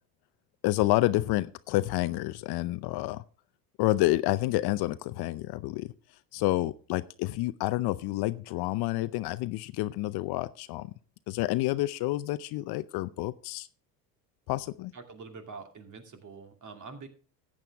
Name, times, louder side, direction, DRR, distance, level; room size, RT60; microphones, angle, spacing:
voice 1, 0.6-3.2 3.8-5.9 6.3-10.9 11.3-13.7 14.5-14.9, left 17 dB, 50° left, 15 dB, 0.7 m, -29 dB
voice 2, 14.9-17.1, right 4 dB, 35° right, 5 dB, 2.5 m, -45 dB
14.0 x 9.0 x 3.5 m, 0.38 s
hypercardioid pair, 80°, 50 cm